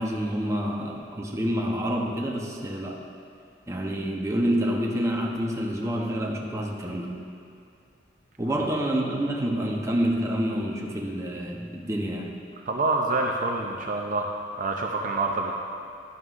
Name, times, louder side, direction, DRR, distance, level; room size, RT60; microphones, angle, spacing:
voice 1, 0.0-3.0 3.7-7.2 8.4-12.4, equal, 15° right, -1 dB, 0.8 m, -28 dB
voice 2, 12.7-15.5, right 3 dB, 45° right, 1 dB, 0.6 m, -27 dB
11.5 x 11.0 x 2.5 m, 2.6 s
head